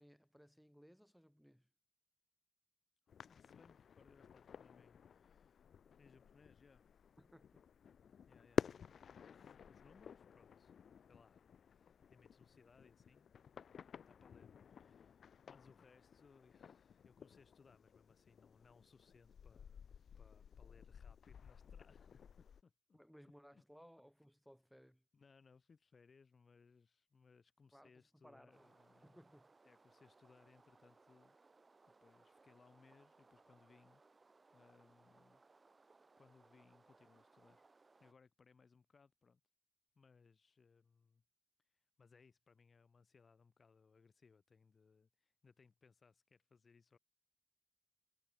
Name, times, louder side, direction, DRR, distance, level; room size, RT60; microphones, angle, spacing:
voice 1, 0.0-1.7 7.2-7.6 22.9-25.0 27.7-28.7 29.0-29.5, equal, ahead, 4.6 m, -63 dB
sound 1, 3.1-22.6, left 7 dB, 90° left, 1.0 m, -50 dB
voice 2, 3.2-5.6 6.0-7.0 8.3-8.9 9.1-10.7 11.1-13.3 14.1-23.0 23.5-23.6 25.1-29.3 29.6-31.4 32.0-34.0 34.5-35.4 36.2-37.6 38.0-39.4 40.0-41.2 41.7-47.0, left 5 dB, 50° left, 4.3 m, -68 dB
sound 2, 28.5-38.1, right 3 dB, 30° right, 3.2 m, -68 dB
wide cardioid pair, 130°, 0 cm